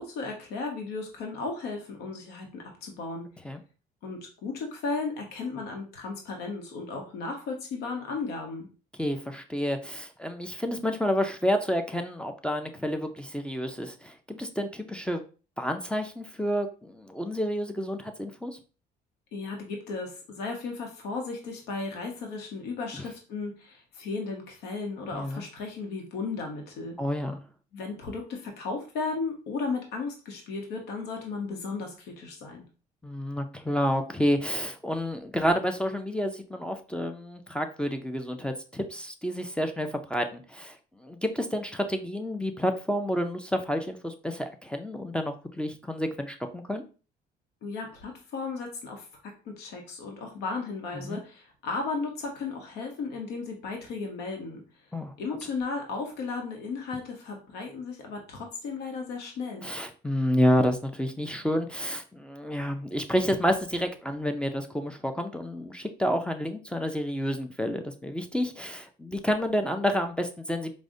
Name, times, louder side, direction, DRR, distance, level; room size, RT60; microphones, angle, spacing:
voice 1, 0.0-3.3 4.0-8.7 19.3-27.0 27.7-32.7 47.6-54.6 55.2-59.7, left 4 dB, 85° left, 2 dB, 0.8 m, -35 dB
voice 2, 9.0-15.2 15.6-18.6 25.1-25.4 27.0-27.4 33.0-46.8 51.0-51.2 54.9-55.1 59.6-70.7, equal, 5° left, 6 dB, 0.4 m, -29 dB
4.8 x 2.0 x 2.6 m, 0.35 s
cardioid pair, 110°, 17 cm